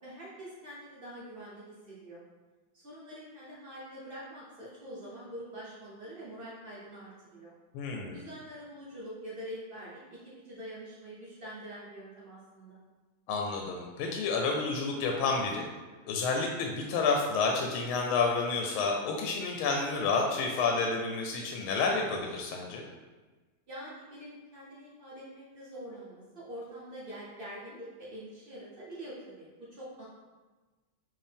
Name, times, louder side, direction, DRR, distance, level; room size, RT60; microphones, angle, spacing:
voice 1, 0.0-2.2 2.7-7.5 8.1-12.8 23.7-30.0, equal, 80° right, -7 dB, 0.5 m, -45 dB
voice 2, 7.7-8.2 13.3-15.7 16.1-22.8, left 4 dB, 80° left, 2 dB, 1.4 m, -30 dB
4.5 x 3.2 x 3.4 m, 1.3 s
omnidirectional pair, 2.3 m